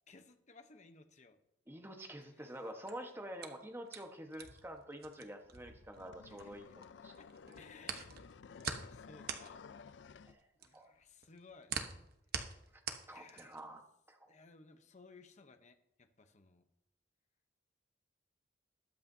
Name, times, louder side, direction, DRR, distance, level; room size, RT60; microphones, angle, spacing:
voice 1, 0.1-1.4 2.2-2.6 6.3-6.5 7.2-9.6 10.6-11.7 13.1-13.6 14.3-16.7, left 4 dB, 40° left, 7 dB, 0.9 m, -60 dB
voice 2, 1.7-7.1 10.3-10.4 10.7-10.9 13.1-13.8 14.1-14.3, equal, 15° right, 4 dB, 1.3 m, -48 dB
sound 1, 2.7-6.8 7.1-13.7, right 6 dB, 55° right, 1.0 m, -44 dB
sound 2, 5.7-10.4, left 6 dB, 70° left, 0.4 m, -55 dB
20.5 x 8.5 x 2.8 m, 0.83 s
head